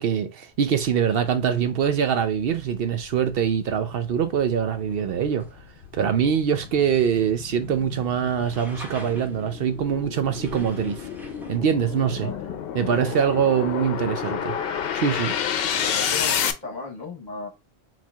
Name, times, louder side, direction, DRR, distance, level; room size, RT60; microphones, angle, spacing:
voice 1, 0.0-5.5 5.9-11.0 11.5-12.3 12.7-14.5 14.9-15.4, right 8 dB, 65° right, 0.7 m, -23 dB
sound 1, 1.8-1.9 2.4-16.5, left 8 dB, 70° left, 0.8 m, -30 dB
sound 2, 2.5-11.6, left 1 dB, ahead, 1.1 m, -48 dB
voice 2, 12.7-13.3 14.2-14.4 15.7-17.5, left 4 dB, 45° left, 1.2 m, -37 dB
4.4 x 4.1 x 2.3 m
omnidirectional pair, 1.1 m